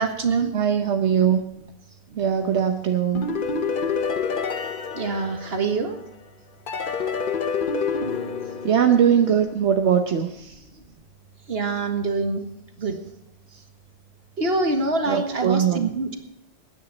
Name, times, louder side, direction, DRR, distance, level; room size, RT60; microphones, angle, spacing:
voice 1, 0.0-0.5 4.9-6.0 11.5-12.4 12.8-13.0 14.4-16.2, right 3 dB, 60° right, 5 dB, 2.0 m, -25 dB
voice 2, 0.5-1.4 2.2-3.3 8.6-10.6 15.1-15.9, right 8 dB, 80° right, 5 dB, 1.2 m, -21 dB
sound 1, 3.1-6.0 6.7-9.5, left 5 dB, 50° left, 1.1 m, -28 dB
19.5 x 9.9 x 4.1 m, 0.83 s
omnidirectional pair, 1.1 m